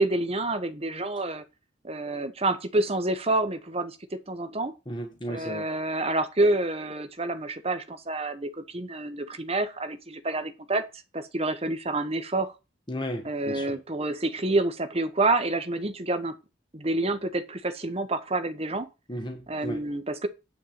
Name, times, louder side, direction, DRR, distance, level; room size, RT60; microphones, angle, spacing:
voice 1, 0.0-1.4 1.8-4.0 4.3-4.7 5.3-10.8 11.1-12.5 13.2-16.4 16.7-18.9 19.5-20.3, right 2 dB, 30° right, 1.2 m, -28 dB
voice 2, 4.9-5.7 12.9-13.8 19.1-19.9, equal, 25° left, 1.4 m, -34 dB
9.7 x 4.7 x 7.5 m
head